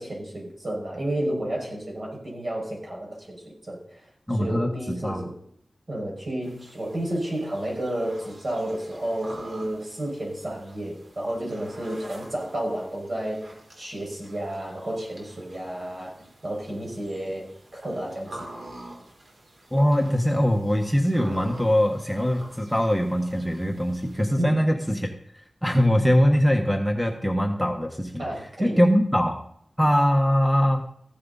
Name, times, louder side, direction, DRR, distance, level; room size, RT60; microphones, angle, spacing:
voice 1, 0.0-4.1 4.3-5.3 5.9-18.5 24.4-24.7 28.2-28.8, right 1 dB, 55° right, -2 dB, 5.9 m, -31 dB
voice 2, 4.3-5.3 19.7-25.1 25.6-28.2 28.6-29.4 29.8-30.8, equal, ahead, 2 dB, 1.4 m, -22 dB
sound 1, 6.4-24.2, right 1 dB, 85° right, 3.9 m, -47 dB
15.5 x 11.0 x 4.1 m, 0.68 s
wide cardioid pair, 85°, 0 cm